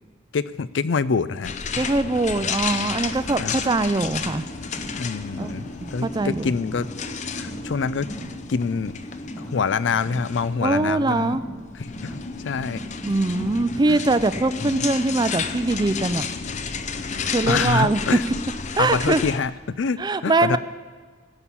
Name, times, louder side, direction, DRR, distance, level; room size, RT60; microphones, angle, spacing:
voice 1, 0.3-1.9 3.3-3.7 4.9-6.9 7.4-8.1 8.5-9.0 9.4-11.4 11.7-12.8 13.9-14.0 14.6-14.8 17.5-18.2 18.8-20.6, left 5 dB, 85° left, 16 dB, 0.5 m, -26 dB
sound 1, 1.4-19.4, left 5 dB, 40° left, 0.6 m, -32 dB
voice 2, 1.7-4.4 5.4-5.5 5.8-6.5 10.6-11.5 13.0-16.3 17.3-18.2 18.8-19.2 20.0-20.6, right 2 dB, 20° right, 13 dB, 0.4 m, -22 dB
Car, 3.4-14.5, right 1 dB, 20° left, 2.2 m, -40 dB
17.0 x 5.7 x 8.4 m, 1.5 s
head